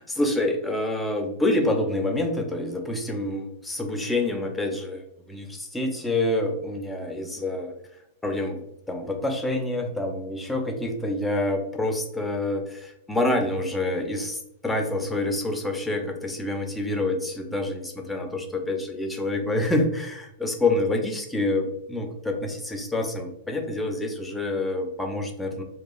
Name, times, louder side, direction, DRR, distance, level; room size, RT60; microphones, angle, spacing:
voice 1, 0.0-7.7 8.2-25.6, left 2 dB, 5° left, 3 dB, 0.5 m, -27 dB
2.8 x 2.3 x 2.3 m, 0.81 s
hypercardioid pair, 110°, 0 cm